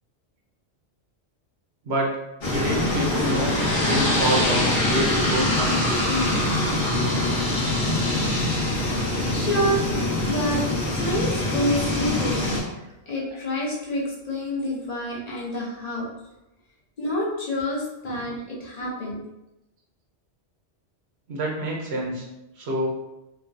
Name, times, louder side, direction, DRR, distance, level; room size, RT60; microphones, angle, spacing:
sound 1, 2.4-12.6, left 1 dB, 60° left, 1.0 m, -24 dB
voice 1, 2.4-3.6 3.9-6.5 21.3-22.3 22.6-22.9, right 1 dB, 75° right, -1 dB, 1.0 m, -27 dB
voice 2, 9.1-9.9 10.2-12.5 13.1-16.1 17.0-19.2, equal, 45° left, -5 dB, 0.7 m, -28 dB
3.0 x 2.2 x 2.6 m, 0.93 s
omnidirectional pair, 1.1 m